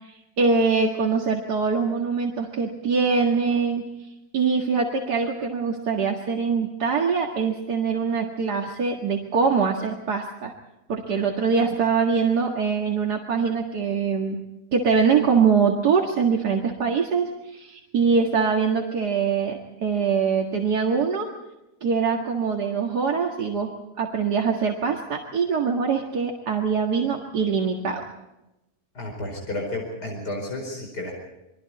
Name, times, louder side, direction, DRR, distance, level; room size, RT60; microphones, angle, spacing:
voice 1, 0.0-3.9 4.3-10.5 10.9-14.4 14.7-21.3 21.8-23.7 24.0-28.1, right 5 dB, 80° right, 1 dB, 2.5 m, -23 dB
voice 2, 28.9-31.1, left 1 dB, 90° left, 0 dB, 5.4 m, -32 dB
28.5 x 22.5 x 4.2 m, 0.93 s
omnidirectional pair, 1.7 m